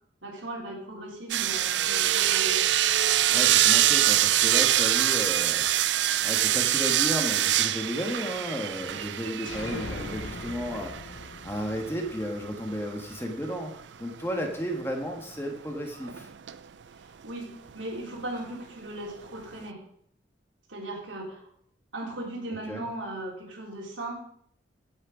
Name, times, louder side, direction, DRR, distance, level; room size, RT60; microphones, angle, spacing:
voice 1, 0.2-2.6 17.0-19.8 20.7-21.5 21.9-24.2, right 1 dB, 90° right, -2 dB, 3.8 m, -37 dB
sound 1, 1.3-12.7 16.0-16.5 17.7-17.8, right 12 dB, 70° right, 0.5 m, -25 dB
voice 2, 3.3-5.7 6.2-13.7 14.0-16.3 22.7-22.8, equal, 10° left, 2 dB, 1.6 m, -33 dB
sound 2, 9.5-13.1, left 2 dB, 80° left, 1.0 m, -40 dB
15.5 x 6.6 x 5.1 m, 0.66 s
head